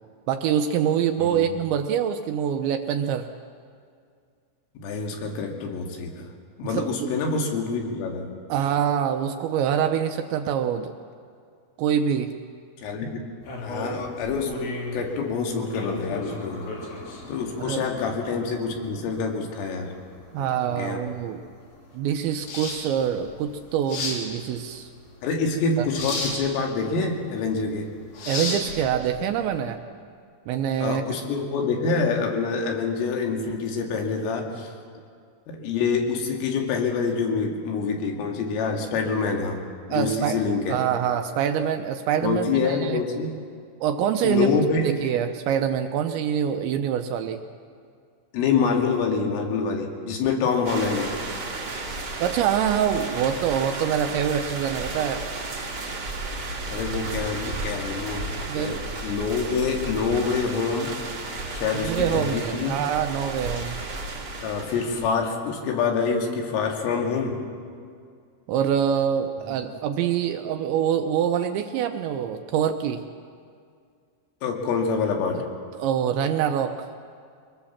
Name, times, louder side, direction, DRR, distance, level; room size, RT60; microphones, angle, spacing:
voice 1, 0.3-3.3 6.6-7.1 8.5-10.9 11.8-12.3 17.6-17.8 20.3-21.4 21.9-24.9 25.8-25.9 28.3-29.8 30.5-31.0 39.9-40.4 40.7-43.0 43.8-44.5 44.8-47.4 52.2-55.2 58.5-58.8 61.8-63.8 68.5-73.0 75.8-76.9, right 9 dB, 80° right, 6 dB, 2.8 m, -25 dB
voice 2, 4.8-6.3 6.6-8.3 12.8-13.2 13.6-16.7 17.3-19.9 20.4-21.1 25.2-27.9 30.8-34.7 35.5-39.6 39.9-40.8 42.2-43.3 44.2-44.9 48.3-51.1 56.7-58.3 58.6-60.9 61.5-62.8 64.4-67.4 69.5-69.6 74.4-75.4, left 5 dB, 80° left, 1 dB, 4.8 m, -26 dB
sound 1, 13.4-29.6, left 2 dB, 65° left, 5.6 m, -35 dB
sound 2, 50.6-65.1, right 2 dB, 50° right, 1.2 m, -33 dB
24.0 x 19.5 x 7.2 m, 2.2 s
omnidirectional pair, 5.8 m